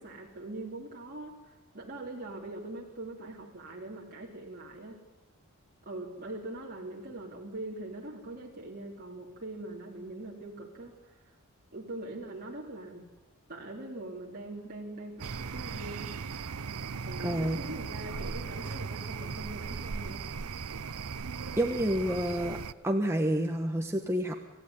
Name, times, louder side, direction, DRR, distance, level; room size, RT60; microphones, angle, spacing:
voice 1, 0.0-5.0 5.9-11.1 11.7-13.1 13.5-16.2 17.0-20.3 21.7-21.8, right 2 dB, 45° right, -2 dB, 3.4 m, -42 dB
sound 1, 15.2-22.7, right 5 dB, 80° right, 0.7 m, -38 dB
voice 2, 17.2-17.6 21.6-22.6 22.8-24.3, equal, 10° right, 3 dB, 1.3 m, -28 dB
27.5 x 15.0 x 9.6 m, 1.1 s
head